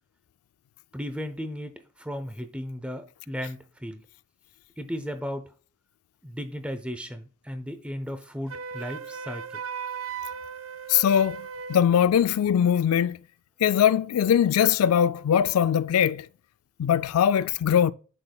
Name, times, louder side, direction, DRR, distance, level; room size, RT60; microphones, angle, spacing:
voice 1, 0.9-4.0 4.8-5.4 6.2-9.4, equal, 5° right, 0.7 m, -35 dB
Wind instrument woodwind instrument, 8.5-11.9, right 6 dB, 65° right, 0.4 m, -36 dB
voice 2, 10.9-13.2 13.6-16.3 16.8-17.9, left 9 dB, 80° left, 0.3 m, -21 dB
8.6 x 6.2 x 2.3 m
head